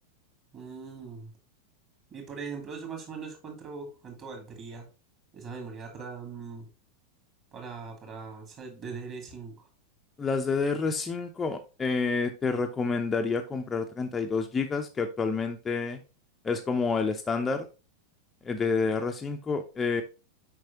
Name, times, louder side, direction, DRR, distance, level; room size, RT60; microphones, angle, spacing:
voice 1, 0.5-1.3 2.1-4.9 5.3-6.7 7.5-9.7, right 5 dB, 30° right, 4 dB, 2.5 m, -40 dB
voice 2, 10.2-16.0 16.4-17.7 18.4-20.0, left 4 dB, 15° left, 4 dB, 0.6 m, -29 dB
7.4 x 5.2 x 2.9 m, 0.32 s
figure-of-eight pair, 90°, 0 cm